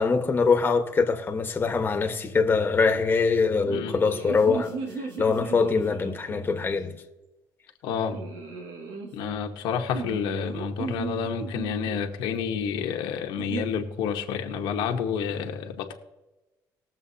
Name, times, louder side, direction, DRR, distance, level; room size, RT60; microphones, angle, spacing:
voice 1, 0.0-4.7 5.2-7.0, left 4 dB, 25° left, 1.3 m, -23 dB
sound 1, 3.5-6.6 8.0-9.1 9.9-12.0 13.4-13.6, right 4 dB, 85° right, 1.9 m, -36 dB
voice 2, 7.8-8.2 9.1-15.9, left 7 dB, 85° left, 1.2 m, -29 dB
20.5 x 7.2 x 2.8 m
cardioid pair, 105°, 8 cm